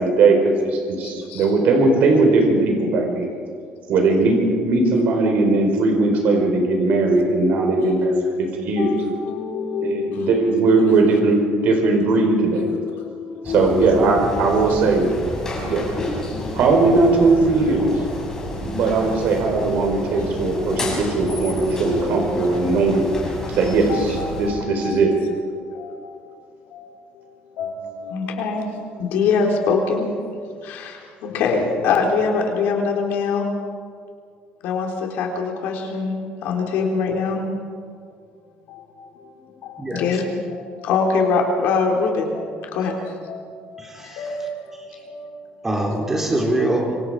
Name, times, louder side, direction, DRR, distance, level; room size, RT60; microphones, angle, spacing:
voice 1, 0.0-3.3 3.9-8.9 9.8-12.7 13.4-15.1 15.6-15.9 16.5-17.9 18.6-23.1 23.5-25.1, right 3 dB, 55° right, 2 dB, 4.5 m, -19 dB
voice 2, 1.0-1.5 8.8-10.3 10.7-10.9 12.5-13.9 14.5-14.8 16.3-17.3 20.2-21.2 22.0-22.8 23.9-25.2 25.6-26.4 26.7-26.9 27.1-30.4 30.6-30.9 31.2-33.5 34.6-36.1 36.4-37.4 38.7-45.7, left 4 dB, 75° left, 1 dB, 4.0 m, -25 dB
sound 1, 13.4-24.5, left 1 dB, 15° left, 5.9 m, -30 dB
voice 3, 43.8-44.2 44.9-45.0 45.6-47.0, right 1 dB, 10° right, 0 dB, 3.7 m, -23 dB
26.0 x 25.0 x 5.0 m, 2.2 s
cardioid pair, 175°, 3 cm